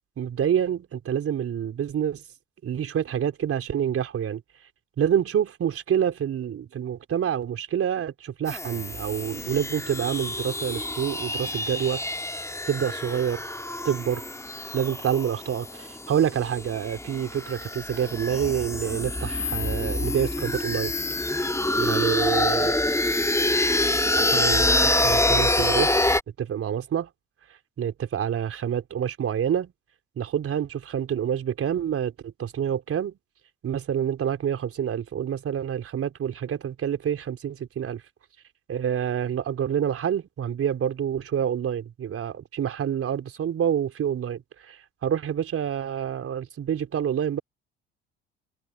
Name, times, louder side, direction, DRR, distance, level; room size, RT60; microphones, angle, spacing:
voice 1, 0.2-2.2 2.6-4.4 5.0-12.0 12.7-13.4 13.8-14.2 14.7-20.9 21.8-22.8 24.1-25.9 26.4-27.1 27.8-29.7 30.2-33.2 33.6-38.0 38.7-47.4, right 9 dB, 45° right, 4.2 m, -27 dB
sound 1, 8.5-26.2, left 2 dB, 10° left, 4.2 m, -26 dB
hypercardioid pair, 60°, 31 cm